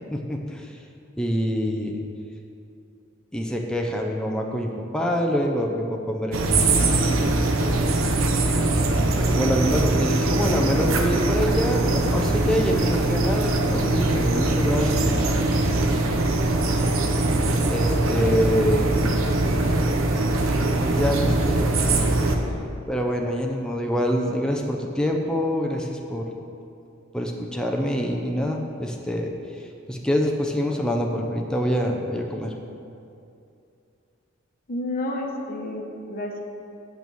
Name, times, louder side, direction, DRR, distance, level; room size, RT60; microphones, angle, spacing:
voice 1, 0.1-0.7 1.2-1.9 3.3-7.8 9.3-15.4 15.9-16.0 17.7-19.0 20.8-22.1 22.9-26.3 27.1-29.3 29.9-32.5, equal, 5° left, 1 dB, 0.6 m, -26 dB
sound 1, 6.3-22.4, right 2 dB, 80° right, 0.8 m, -22 dB
voice 2, 34.7-36.4, left 1 dB, 45° left, 2 dB, 1.0 m, -30 dB
8.4 x 4.6 x 6.8 m, 2.5 s
head